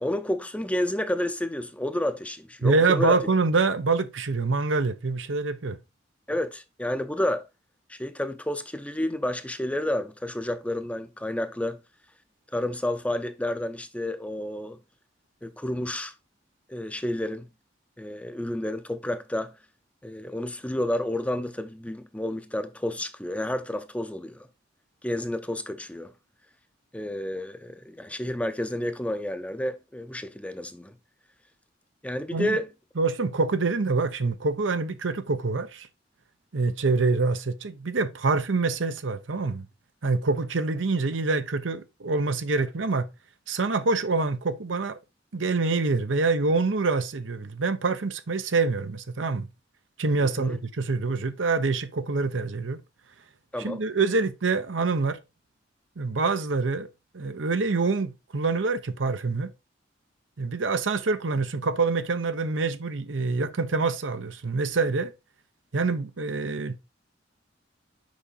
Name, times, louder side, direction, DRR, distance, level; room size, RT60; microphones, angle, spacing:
voice 1, 0.0-3.2 6.3-7.5 7.9-11.8 12.5-14.8 15.4-16.1 16.7-17.5 18.0-19.5 20.0-24.5 25.0-26.1 26.9-30.9 32.0-32.7 50.2-50.6 53.5-53.8, left 1 dB, 5° left, 0.6 m, -30 dB
voice 2, 2.6-5.8 32.3-32.6 33.0-35.9 36.5-39.7 40.0-43.1 43.5-45.0 45.3-49.5 50.0-52.8 53.6-55.2 56.0-56.9 57.1-59.5 60.4-65.1 65.7-66.8, right 3 dB, 80° right, 0.8 m, -26 dB
6.3 x 4.8 x 4.0 m
head